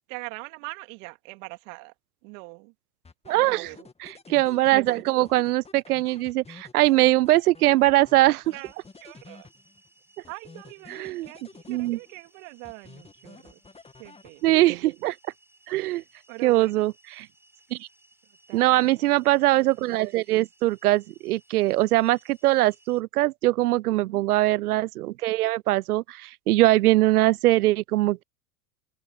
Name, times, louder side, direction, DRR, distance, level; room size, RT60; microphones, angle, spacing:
voice 1, 0.1-1.9 2.2-2.7 3.4-3.9 8.5-9.5 10.3-13.6 14.0-14.5 16.3-16.8 18.5-19.1 23.9-24.2, right 29 dB, 60° right, 2.7 m, -43 dB
sound 1, 3.0-9.9 10.2-12.3 12.6-14.7, left 4 dB, 15° left, 2.2 m, -50 dB
voice 2, 3.3-3.7 4.0-8.4 10.9-11.3 11.7-12.0 14.4-15.2 15.7-16.0 16.4-17.3 17.7-17.9 18.5-28.2, right 17 dB, 80° right, 0.6 m, -22 dB
sound 2, 8.5-23.0, right 2 dB, 5° right, 5.0 m, -61 dB
open air
hypercardioid pair, 95°, 44 cm